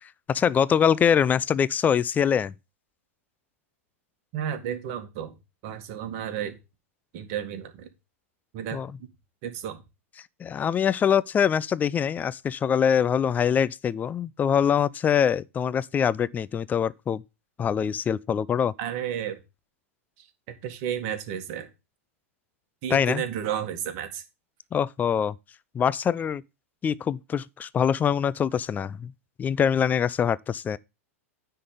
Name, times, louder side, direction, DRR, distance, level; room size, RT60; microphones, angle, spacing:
voice 1, 0.3-2.5 8.7-8.9 10.4-17.2 17.6-18.7 22.9-23.2 24.7-25.4 25.7-26.4 26.8-29.1 29.4-30.8, left 8 dB, 20° left, 0.5 m, -24 dB
voice 2, 4.3-5.3 5.6-6.6 7.1-7.9 8.5-9.1 9.4-9.8 18.8-19.4 20.2-21.7 22.8-24.2, right 9 dB, 50° right, 1.9 m, -32 dB
9.6 x 3.9 x 6.7 m
hypercardioid pair, 105°, 8 cm